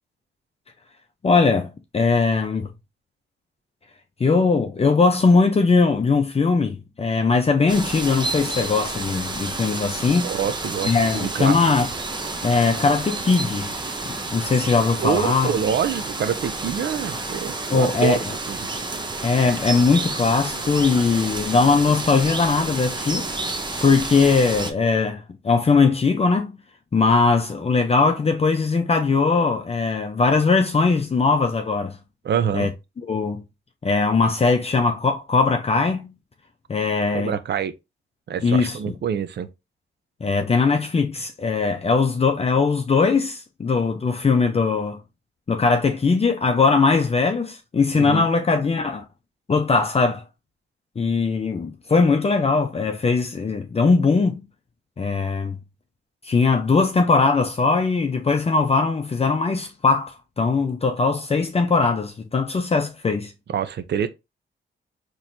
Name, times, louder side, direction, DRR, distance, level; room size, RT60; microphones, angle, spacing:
voice 1, 1.2-2.7 4.2-10.3 10.8-11.9 12.4-13.7 14.0-15.5 17.7-18.2 19.2-23.3 23.8-26.5 26.9-32.0 32.5-32.7 33.0-33.4 33.8-36.1 36.7-37.4 38.4-38.9 40.2-45.0 45.5-49.0 49.5-50.2 51.0-54.5 55.0-55.6 56.2-63.3, left 4 dB, 30° left, 0.6 m, -20 dB
sound 1, 7.7-24.7, right 2 dB, 25° right, 0.8 m, -30 dB
voice 2, 10.2-11.6 15.0-18.6 32.2-32.7 37.1-37.7 38.3-39.5 47.9-48.3 63.5-64.1, right 8 dB, 60° right, 0.6 m, -26 dB
4.1 x 3.1 x 2.7 m
cardioid pair, 90°, 20 cm